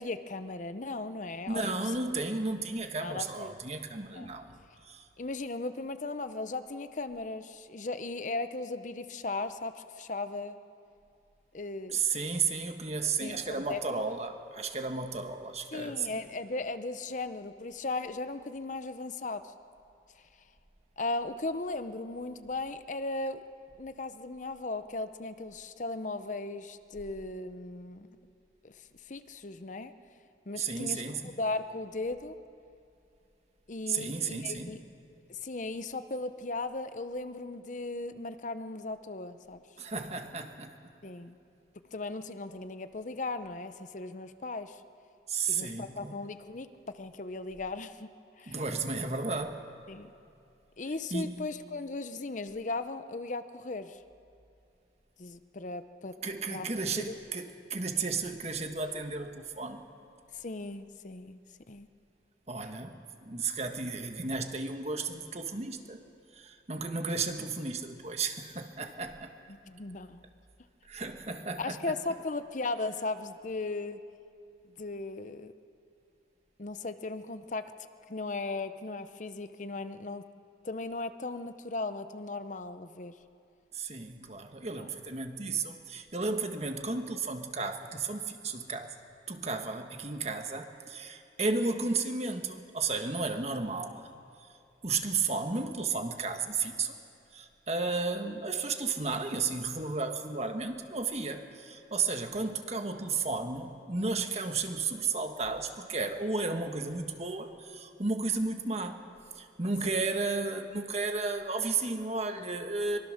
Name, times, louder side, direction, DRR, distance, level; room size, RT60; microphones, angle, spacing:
voice 1, 0.0-1.8 3.0-3.5 4.1-4.3 5.2-10.6 11.5-12.0 13.2-14.0 15.7-19.5 21.0-23.4 23.8-28.1 28.6-28.7 29.1-29.9 30.5-31.0 31.4-32.3 33.7-34.8 35.3-39.6 41.0-41.3 41.9-44.8 45.5-46.7 46.9-48.1 48.4-48.6 49.9-50.1 50.8-54.0 55.2-56.1 56.5-56.7 57.0-57.2 60.3-61.4 61.7-61.9 69.5-70.2 71.6-74.0 74.8-75.5 76.6-77.6 78.1-80.2 80.6-83.1 84.8-84.9 109.8-110.1, left 3 dB, 45° left, 10 dB, 0.7 m, -37 dB
voice 2, 1.5-4.5 4.8-5.1 11.9-16.1 30.6-31.3 33.9-34.8 39.8-40.7 45.3-46.2 48.5-49.6 51.1-51.4 56.2-59.8 62.5-66.0 66.3-69.3 70.8-71.9 83.7-89.0 89.3-94.1 94.8-96.9 97.3-109.0 109.3-113.0, right 4 dB, 35° right, 6 dB, 1.4 m, -33 dB
23.5 x 23.5 x 6.5 m, 2.5 s
head